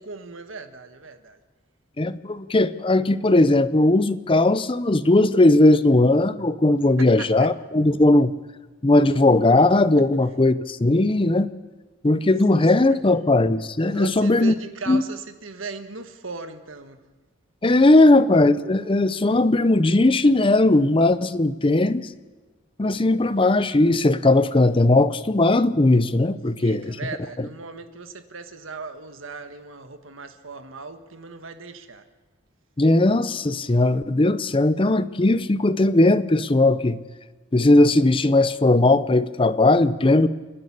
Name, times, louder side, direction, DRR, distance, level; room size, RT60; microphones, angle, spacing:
voice 1, 0.0-1.4 7.0-7.5 12.9-13.0 13.9-17.0 26.6-32.1, right 4 dB, 85° right, 9 dB, 1.6 m, -38 dB
voice 2, 2.0-8.3 8.8-11.5 12.0-14.5 14.9-15.0 17.6-22.1 22.8-27.0 32.8-37.0 37.5-40.3, left 2 dB, 25° left, 15 dB, 0.6 m, -18 dB
29.0 x 11.0 x 8.7 m, 1.3 s
head